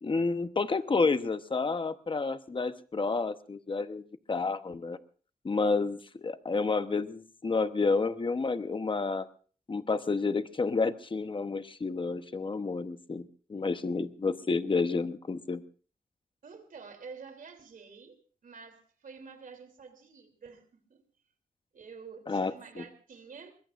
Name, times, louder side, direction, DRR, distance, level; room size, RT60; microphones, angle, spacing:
voice 1, 0.0-5.0 5.4-9.3 9.7-15.6 22.3-22.8, left 4 dB, 35° left, 1.0 m, -30 dB
voice 2, 16.4-21.0 21.7-23.5, right 5 dB, 65° right, 3.1 m, -49 dB
23.0 x 21.5 x 2.5 m
wide cardioid pair, 110°, 15 cm